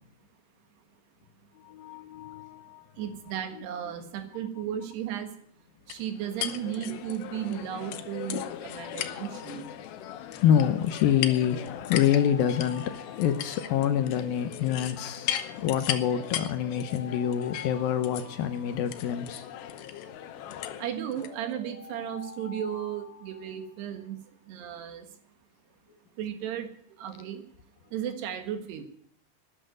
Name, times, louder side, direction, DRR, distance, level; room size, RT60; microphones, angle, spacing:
voice 1, 1.6-2.8 3.6-3.7 8.3-8.4 8.8-9.0 10.4-19.5, left 9 dB, 75° left, 10 dB, 2.4 m, -27 dB
voice 2, 3.0-5.3 5.9-9.7 20.8-24.2 24.5-25.1 26.2-26.7 27.0-27.4 27.9-28.8, right 10 dB, 80° right, 7 dB, 3.6 m, -35 dB
sound 1, 5.9-21.3, left 11 dB, 90° left, 3.2 m, -38 dB
Alarm, 11.2-14.5 15.7-19.5 20.7-24.0, left 4 dB, 55° left, 6.9 m, -48 dB
13.0 x 10.0 x 9.2 m, 0.64 s
omnidirectional pair, 4.7 m